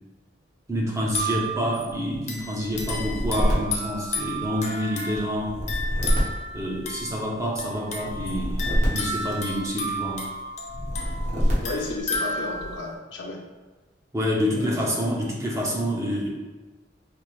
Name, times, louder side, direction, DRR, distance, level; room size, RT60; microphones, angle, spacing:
voice 1, 0.7-5.6 6.5-10.3 14.1-16.3, equal, 15° right, -3 dB, 0.6 m, -27 dB
sound 1, 1.0-12.9, equal, 40° left, 0.6 m, -33 dB
sound 2, 2.7-4.6 5.3-7.3 8.0-9.9 10.7-12.0, equal, 45° right, 0.9 m, -27 dB
voice 2, 11.6-13.4 14.5-14.8, left 2 dB, 80° left, 2 dB, 0.5 m, -33 dB
5.1 x 2.0 x 3.0 m, 1.2 s
head